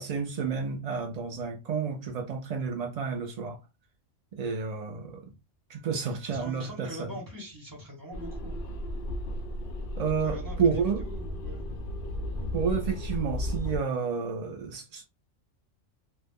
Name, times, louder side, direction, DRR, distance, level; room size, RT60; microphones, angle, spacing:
voice 1, 0.0-3.6 4.3-5.3 5.7-7.1 10.0-11.0 12.5-15.1, right 5 dB, 85° right, 0.3 m, -30 dB
voice 2, 6.0-8.6 10.2-11.8, equal, 20° right, 1.0 m, -43 dB
sound 1, 8.1-13.8, left 1 dB, 60° left, 0.6 m, -34 dB
2.3 x 2.1 x 3.5 m
omnidirectional pair, 1.3 m